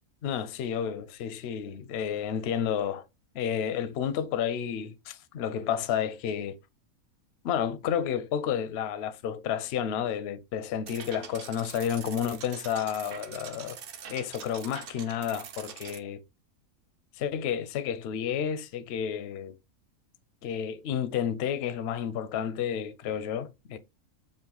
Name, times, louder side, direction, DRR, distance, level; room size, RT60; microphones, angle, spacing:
voice 1, 0.2-3.0 3.3-6.6 7.4-13.8 14.1-16.2 17.2-19.5 20.4-23.8, left 8 dB, 65° left, 0.7 m, -31 dB
sound 1, 10.9-16.0, right 8 dB, 60° right, 0.6 m, -44 dB
5.3 x 2.4 x 3.7 m
omnidirectional pair, 1.5 m